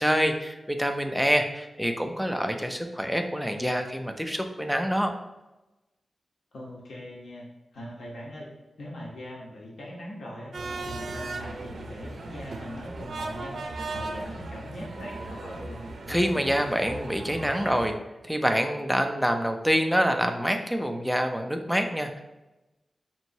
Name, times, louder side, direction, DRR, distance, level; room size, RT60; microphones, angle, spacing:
voice 1, 0.0-5.1 16.1-17.9 18.2-22.2, equal, ahead, 5 dB, 0.4 m, -26 dB
voice 2, 6.5-7.5 7.7-8.5 8.8-10.5 10.8-13.6 13.9-15.8, equal, 85° left, -3 dB, 0.9 m, -41 dB
sound 1, 10.5-17.9, right 2 dB, 85° right, 0.5 m, -37 dB
5.2 x 2.9 x 2.7 m, 1.0 s
wide cardioid pair, 125°, 0 cm